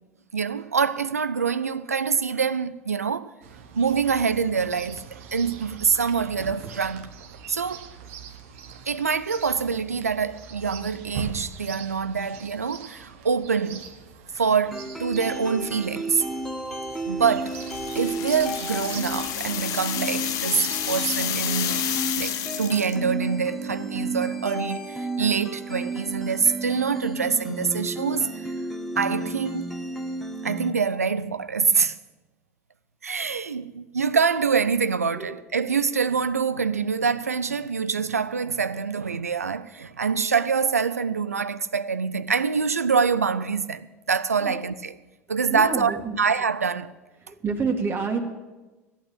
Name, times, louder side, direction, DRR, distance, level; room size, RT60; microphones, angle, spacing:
voice 1, 0.3-3.3 3.7-7.1 7.5-7.9 8.9-13.8 14.3-16.2 17.1-17.6 17.9-28.5 29.0-29.7 30.4-32.0 33.0-45.0 45.3-46.9, right 5 dB, 90° right, 0.4 m, -25 dB
Chirp tweet, 3.4-22.3, right 6 dB, 65° right, 1.1 m, -42 dB
sound 1, 14.7-30.7, right 2 dB, ahead, 1.4 m, -33 dB
sound 2, 17.5-23.0, left 10 dB, 50° left, 0.9 m, -30 dB
voice 2, 45.5-46.2 47.2-48.2, right 4 dB, 30° right, 1.9 m, -28 dB
14.5 x 8.8 x 6.6 m
figure-of-eight pair, 75°, 8 cm